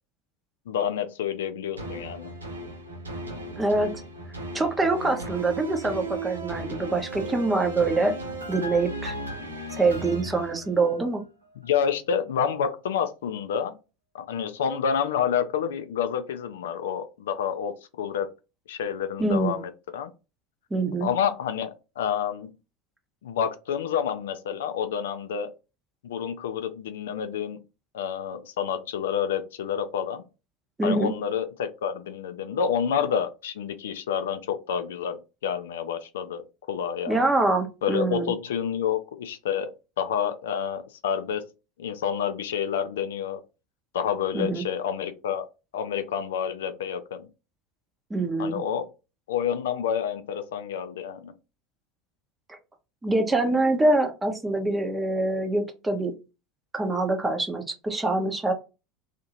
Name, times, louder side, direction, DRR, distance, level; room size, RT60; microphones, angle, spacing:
voice 1, 0.7-2.3 11.6-13.8 14.1-18.3 18.7-20.1 21.0-22.5 23.2-25.5 26.0-27.6 27.9-30.2 30.8-36.4 36.7-37.3 37.8-41.5 41.8-43.4 43.9-45.5 45.7-47.3 48.4-48.9 49.3-51.3, left 8 dB, 70° left, 0.4 m, -29 dB
sound 1, 1.8-11.2 11.6-11.7, right 2 dB, 85° right, 0.7 m, -36 dB
voice 2, 3.6-3.9 4.5-8.1 8.5-9.2 9.7-11.2 19.2-19.6 20.7-21.1 30.8-31.1 37.1-38.3 44.3-44.6 48.1-48.6 52.5-52.6 53.0-56.1 56.7-58.5, right 2 dB, 15° right, 0.7 m, -25 dB
2.8 x 2.5 x 2.8 m
figure-of-eight pair, 75°, 0 cm